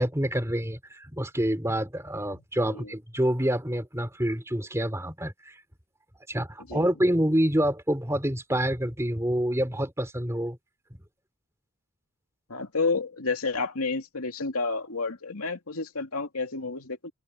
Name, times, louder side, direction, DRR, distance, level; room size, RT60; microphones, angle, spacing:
voice 1, 0.0-5.6 6.3-10.6, equal, 15° right, 2.9 m, -27 dB
voice 2, 2.3-2.9 6.7-6.9 12.5-17.1, left 4 dB, 85° left, 2.7 m, -30 dB
open air
head